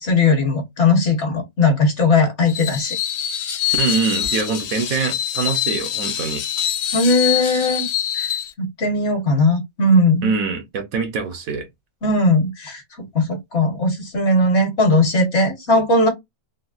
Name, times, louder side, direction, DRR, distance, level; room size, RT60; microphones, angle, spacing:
voice 1, 0.0-3.0 6.9-7.9 8.1-8.3 8.6-10.3 12.0-12.8 13.1-16.1, left 2 dB, 55° left, 1.3 m, -18 dB
Screech, 2.5-8.5, left 11 dB, 70° left, 1.0 m, -24 dB
voice 2, 3.8-6.4 10.2-11.6, right 5 dB, 75° right, 1.3 m, -24 dB
3.8 x 2.0 x 2.4 m
omnidirectional pair, 1.5 m